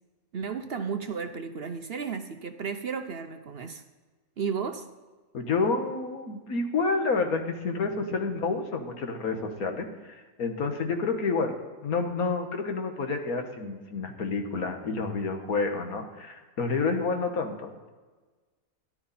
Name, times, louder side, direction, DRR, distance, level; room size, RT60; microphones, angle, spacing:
voice 1, 0.3-3.8 4.4-4.9, right 6 dB, 50° right, 8 dB, 0.8 m, -33 dB
voice 2, 5.3-11.6 11.8-17.9, left 4 dB, 80° left, 5 dB, 1.8 m, -29 dB
13.5 x 11.0 x 4.2 m, 1.3 s
omnidirectional pair, 1.5 m